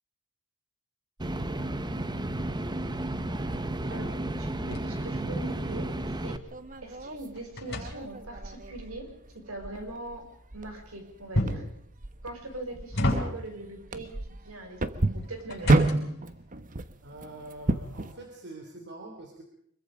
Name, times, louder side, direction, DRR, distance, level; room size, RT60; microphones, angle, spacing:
sound 1, 1.2-6.4, right 1 dB, 20° right, 1.1 m, -32 dB
sound 2, 3.0-5.9 6.3-8.5 11.3-11.8 12.5-13.7 14.9-16.3, left 1 dB, 55° left, 6.9 m, -33 dB
voice 1, 3.9-5.9 6.2-6.4 6.8-9.1 9.3-10.2 10.5-11.7 12.2-14.2 14.4-14.8 15.1-15.9, right 2 dB, 70° right, 4 dB, 6.1 m, -41 dB
sound 3, 6.0-18.1, right 2 dB, 40° right, 1.2 m, -31 dB
voice 2, 17.0-19.4, right 2 dB, 55° right, 3 dB, 3.4 m, -44 dB
25.5 x 22.5 x 5.1 m, 0.71 s
head